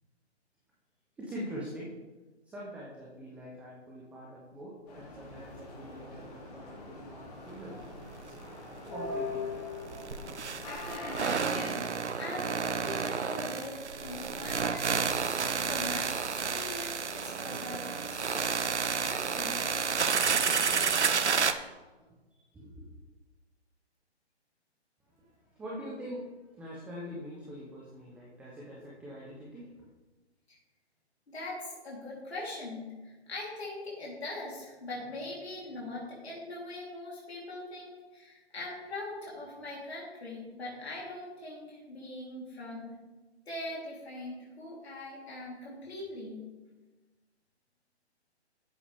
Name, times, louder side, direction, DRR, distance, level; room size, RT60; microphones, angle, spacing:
voice 1, 1.2-1.9 2.4-7.8 8.2-8.3 8.9-9.6 10.4-10.5 22.0-22.9 25.1-29.9, equal, 5° right, -5 dB, 0.7 m, -44 dB
sound 1, 4.9-11.7, left 3 dB, 35° left, 2.7 m, -41 dB
sound 2, 7.8-8.0 8.2-8.3 9.9-21.5, right 5 dB, 80° right, 0.8 m, -30 dB
voice 2, 10.6-18.8 19.0-19.6 31.3-42.9 43.5-46.4, left 2 dB, 65° left, -5 dB, 3.6 m, -42 dB
12.0 x 8.5 x 3.5 m, 1.2 s
figure-of-eight pair, 140°, 34 cm